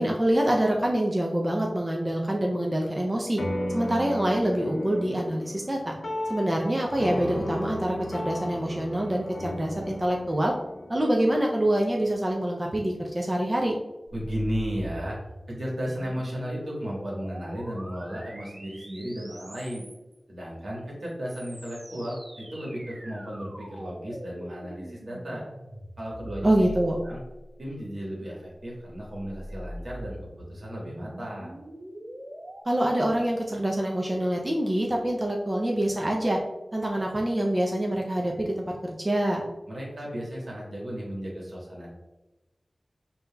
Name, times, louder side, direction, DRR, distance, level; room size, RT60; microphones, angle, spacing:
voice 1, 0.0-3.4 3.7-5.9 6.3-10.5 10.9-13.8 26.4-27.0 32.7-36.4 36.7-39.4, right 1 dB, 30° right, -1 dB, 0.5 m, -25 dB
sound 1, 3.4-12.1, left 1 dB, 70° left, 0.5 m, -35 dB
sound 2, 14.1-20.2 21.0-27.6 28.7-32.6, equal, 60° right, 1.0 m, -43 dB
voice 2, 14.1-15.2 15.5-19.8 20.3-25.4 26.0-26.7 27.0-27.2 27.6-30.2 30.5-31.6 39.7-41.9, equal, 80° right, -4 dB, 1.3 m, -34 dB
5.5 x 2.7 x 2.2 m, 1.1 s
wide cardioid pair, 70°, 0 cm